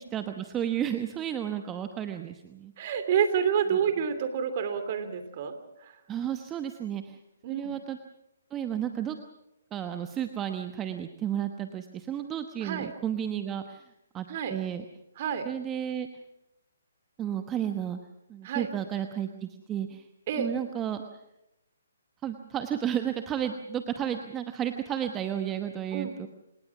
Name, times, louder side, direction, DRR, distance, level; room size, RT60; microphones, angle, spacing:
voice 1, 0.1-2.7 6.1-7.2 7.5-8.0 8.5-9.2 9.7-13.8 14.1-14.8 15.4-16.1 17.2-18.0 18.3-20.0 20.4-21.0 22.2-26.3, right 10 dB, 15° right, 7 dB, 1.1 m, -32 dB
voice 2, 2.8-5.6 5.8-5.9 7.4-7.7 12.6-12.9 14.3-14.6 15.2-15.5 18.4-18.7 20.3-20.5 25.9-26.1, right 7 dB, 40° right, 9 dB, 3.0 m, -28 dB
27.5 x 19.0 x 6.0 m, 0.88 s
figure-of-eight pair, 140°, 0 cm